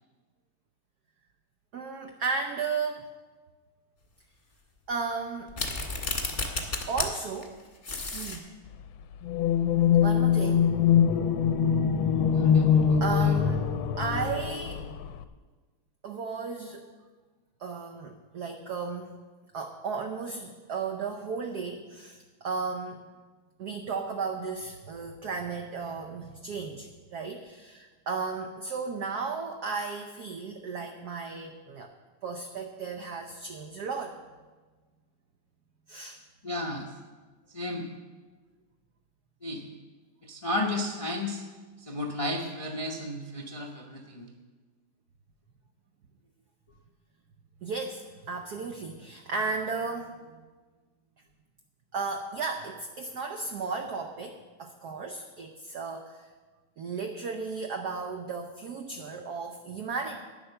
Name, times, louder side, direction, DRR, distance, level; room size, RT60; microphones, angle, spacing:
voice 1, 1.7-3.0 4.9-5.5 6.9-7.6 8.1-8.5 10.0-10.7 13.0-13.7 14.0-14.9 16.0-16.9 17.6-19.2 19.5-23.0 23.6-31.9 32.2-34.2 35.9-36.2 47.6-50.2 51.9-56.3 56.8-60.2, right 4 dB, 60° right, 4 dB, 1.1 m, -34 dB
sound 1, 5.5-7.1 7.4-7.5 7.8-8.4, left 3 dB, 25° left, 1.4 m, -31 dB
sound 2, 9.2-15.2, left 8 dB, 75° left, 1.3 m, -23 dB
voice 2, 12.3-13.4 36.4-36.9 37.5-37.9 39.4-39.7 40.2-41.4 41.8-44.3, left 1 dB, 45° left, 1 dB, 0.4 m, -33 dB
11.0 x 9.3 x 6.7 m, 1.4 s
omnidirectional pair, 2.4 m